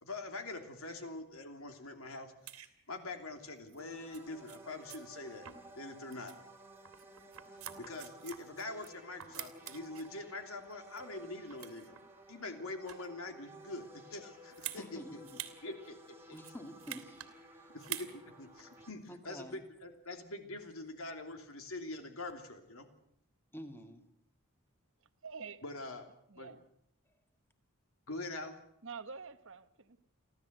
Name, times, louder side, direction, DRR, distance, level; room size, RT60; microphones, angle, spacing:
voice 1, 0.0-2.3 2.9-5.5 5.8-6.3 7.8-12.0 12.3-15.2 15.6-16.4 17.7-22.9 25.6-26.1 26.3-26.5 28.1-28.6, left 2 dB, 70° left, 2.9 m, -44 dB
sound 1, 2.5-2.7 3.7-3.8 4.1-4.2 4.5-4.6 4.9-5.0 5.4-5.8 6.1-6.4 6.8-8.9 9.2-10.1 10.6-11.2 11.5-12.0 12.6-13.2 14.5-14.8 15.2-15.6 15.8-15.9 16.3-17.3 17.8-18.1 18.6-18.7, right 12 dB, 75° right, 2.2 m, -46 dB
sound 2, 3.8-18.9, right 1 dB, 10° right, 2.2 m, -55 dB
voice 2, 14.8-15.4 16.3-17.2 17.5-17.7 19.1-19.6 23.5-24.1, equal, 10° left, 1.8 m, -48 dB
voice 3, 25.2-25.6 26.3-26.6 28.8-30.1, right 5 dB, 60° right, 1.1 m, -47 dB
30.0 x 12.5 x 8.0 m
head